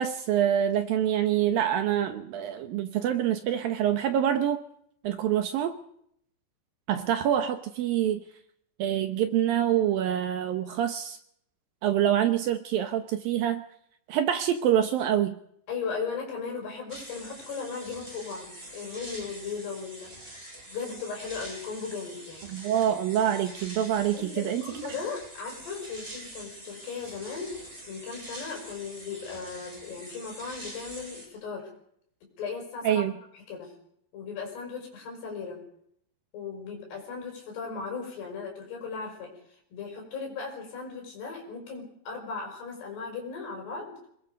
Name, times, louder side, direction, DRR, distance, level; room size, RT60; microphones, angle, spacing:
voice 1, 0.0-4.6 5.0-5.8 6.9-8.2 8.8-11.2 11.8-13.6 14.1-15.4 22.5-24.6 32.8-33.1, right 10 dB, 70° right, 8 dB, 2.4 m, -26 dB
voice 2, 15.7-20.1 20.7-22.5 24.1-31.7 32.4-33.0 33.5-33.7 34.1-35.6 36.3-39.3 39.7-44.1, left 5 dB, 70° left, 1 dB, 7.8 m, -37 dB
sound 1, 16.9-31.3, right 1 dB, 15° right, 5.9 m, -45 dB
25.5 x 20.5 x 5.3 m, 0.70 s
omnidirectional pair, 4.9 m